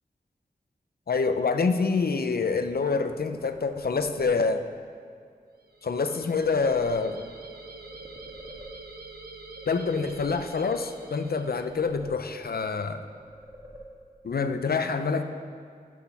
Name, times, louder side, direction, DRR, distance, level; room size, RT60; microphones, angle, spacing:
voice 1, 1.1-4.6 5.8-7.2 9.7-13.0 14.2-15.2, left 4 dB, 70° left, 8 dB, 0.6 m, -26 dB
sound 1, 2.7-4.7 6.1-7.5 7.8-9.2 9.5-10.9 11.3-12.6 13.0-14.3, right 1 dB, 20° right, 1.5 m, -47 dB
sound 2, 5.6-12.0, right 3 dB, 70° right, 1.0 m, -46 dB
12.0 x 6.2 x 5.9 m, 2.2 s
wide cardioid pair, 60°, 16 cm